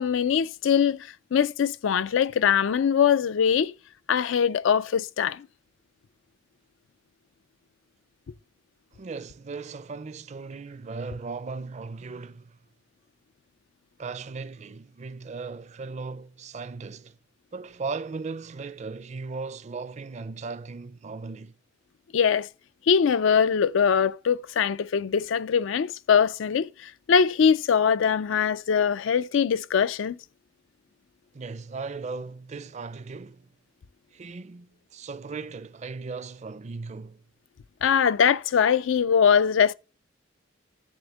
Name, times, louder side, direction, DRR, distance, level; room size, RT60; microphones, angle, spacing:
voice 1, 0.0-3.7 4.1-5.5 22.1-22.5 22.9-30.2 37.8-39.7, left 7 dB, 75° left, 0.4 m, -22 dB
voice 2, 8.9-12.6 14.0-17.2 17.5-21.5 31.3-33.5 34.1-37.2, right 4 dB, 35° right, 0.4 m, -37 dB
10.5 x 3.5 x 6.9 m
head